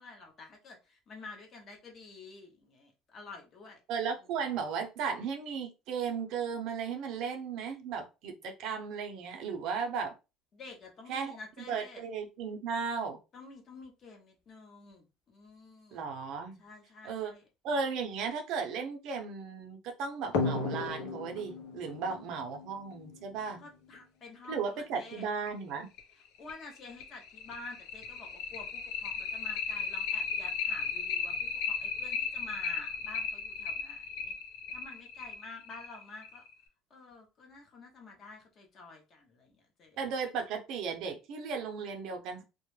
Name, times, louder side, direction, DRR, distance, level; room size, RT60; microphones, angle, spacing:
voice 1, 0.0-3.8 10.5-12.1 13.3-16.1 16.6-17.5 22.1-22.2 23.6-25.3 26.4-34.3 34.7-36.4 36.9-40.0, left 3 dB, 35° left, 0.7 m, -49 dB
voice 2, 3.9-10.1 11.1-11.3 11.7-13.2 15.9-16.6 17.0-17.3 17.6-23.6 24.5-25.9 40.0-42.4, right 5 dB, 60° right, 0.5 m, -35 dB
sound 1, 20.3-23.5 25.0-25.1 25.5-25.6 26.0-26.1 26.5-36.5, left 5 dB, 80° left, 0.6 m, -35 dB
2.2 x 2.0 x 3.0 m
cardioid pair, 150°, 0 cm